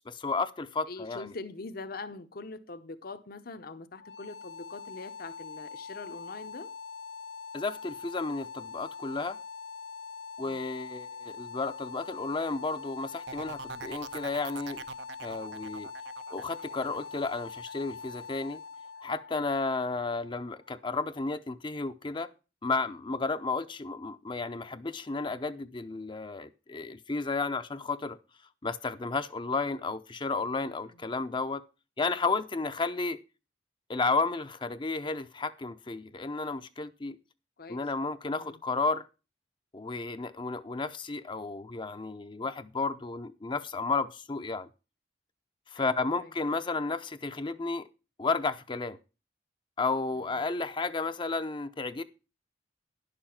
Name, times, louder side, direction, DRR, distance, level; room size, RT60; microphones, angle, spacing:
voice 1, 0.1-1.3 7.5-9.4 10.4-14.8 15.2-15.9 16.3-18.6 19.0-22.3 22.6-28.2 28.6-31.6 32.0-33.2 33.9-37.2 37.7-39.1 39.7-44.7 45.7-47.9 48.2-49.0 49.8-52.0, left 3 dB, 25° left, 0.6 m, -32 dB
voice 2, 0.9-6.7 10.4-10.6 37.6-37.8 38.4-38.6 45.8-46.3 50.4-50.5, left 3 dB, 55° left, 0.8 m, -43 dB
sound 1, 3.9-20.9, left 5 dB, 85° left, 1.0 m, -44 dB
sound 2, 13.3-18.9 19.3-19.7, right 6 dB, 70° right, 0.6 m, -44 dB
11.0 x 6.8 x 5.8 m
head